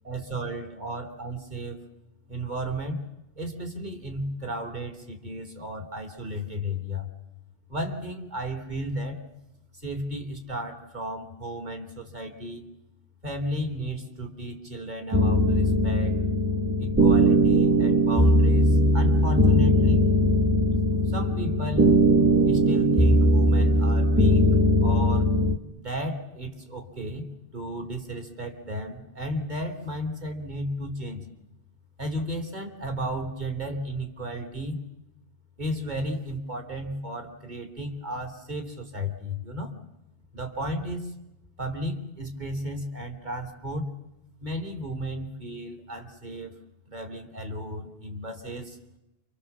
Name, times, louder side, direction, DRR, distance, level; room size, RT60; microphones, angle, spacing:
voice 1, 0.0-1.8 2.3-3.0 3.4-7.1 7.7-9.2 9.8-12.7 13.2-16.2 16.8-20.0 21.1-22.0 22.4-24.4 24.8-25.3 25.8-27.3 27.5-31.3 32.0-34.8 35.6-39.7 40.3-41.1 41.6-43.9 44.4-46.5 46.9-48.8, equal, 40° right, 4 dB, 3.4 m, -34 dB
sound 1, 15.1-25.6, equal, 10° right, 1.2 m, -20 dB
29.0 x 26.0 x 7.4 m, 0.90 s
omnidirectional pair, 1.2 m